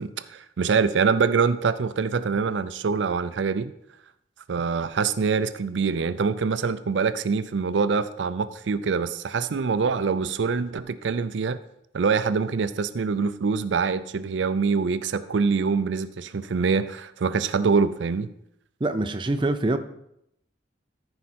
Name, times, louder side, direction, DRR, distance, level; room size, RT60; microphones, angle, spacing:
voice 1, 0.0-3.7 4.5-11.6 11.9-18.3, right 5 dB, 80° right, 13 dB, 0.4 m, -24 dB
voice 2, 18.8-19.8, right 2 dB, 25° right, 8 dB, 0.5 m, -24 dB
14.0 x 4.8 x 4.3 m, 0.77 s
head